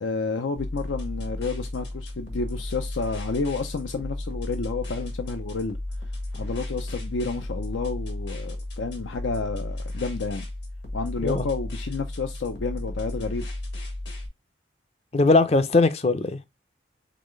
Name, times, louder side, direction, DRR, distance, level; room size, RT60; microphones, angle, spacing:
voice 1, 0.0-5.8 6.3-10.4 10.9-13.5, left 4 dB, 85° left, 0.6 m, -30 dB
sound 1, 0.6-14.3, left 1 dB, 70° left, 1.7 m, -34 dB
voice 2, 15.1-16.5, left 3 dB, 35° left, 0.5 m, -20 dB
4.2 x 4.0 x 3.1 m
head